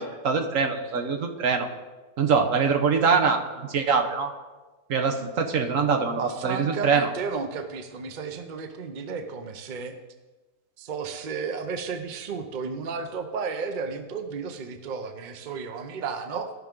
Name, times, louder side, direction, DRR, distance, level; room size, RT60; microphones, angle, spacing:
voice 1, 0.0-1.7 2.2-4.3 4.9-7.1, right 5 dB, 55° right, 4 dB, 1.2 m, -24 dB
voice 2, 6.1-9.9 10.8-16.5, right 5 dB, 70° right, 7 dB, 0.4 m, -33 dB
15.5 x 5.9 x 3.7 m, 1.2 s
omnidirectional pair, 1.9 m